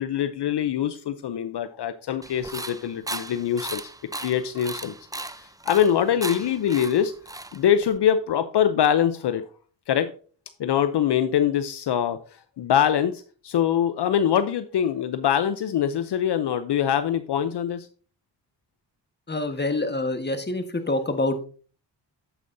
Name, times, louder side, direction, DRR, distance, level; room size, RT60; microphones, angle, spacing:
voice 1, 0.0-3.8 4.2-4.9 5.4-7.1 7.5-9.4 9.9-10.1 10.6-12.2 12.6-17.9, left 9 dB, 65° left, 11 dB, 0.7 m, -23 dB
sound 1, 2.2-8.0, right 2 dB, 10° right, 0.5 m, -36 dB
voice 2, 19.3-21.5, left 2 dB, 25° left, 7 dB, 1.5 m, -26 dB
9.1 x 7.7 x 2.7 m, 0.40 s
cardioid pair, 55°, 44 cm